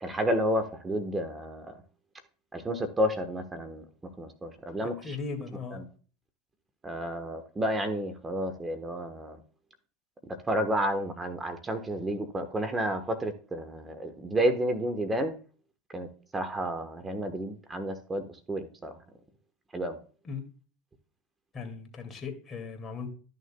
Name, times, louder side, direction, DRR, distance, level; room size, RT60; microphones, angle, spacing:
voice 1, 0.0-1.7 2.5-3.8 4.2-5.2 5.7-5.9 6.8-9.4 10.5-15.3 15.9-16.1 16.3-18.9 19.7-20.0, equal, 20° right, 8 dB, 1.2 m, -31 dB
voice 2, 5.0-5.8 20.2-20.4 21.5-23.1, left 5 dB, 30° left, 4 dB, 2.3 m, -37 dB
13.0 x 6.5 x 2.3 m, 0.39 s
hypercardioid pair, 95°, 0 cm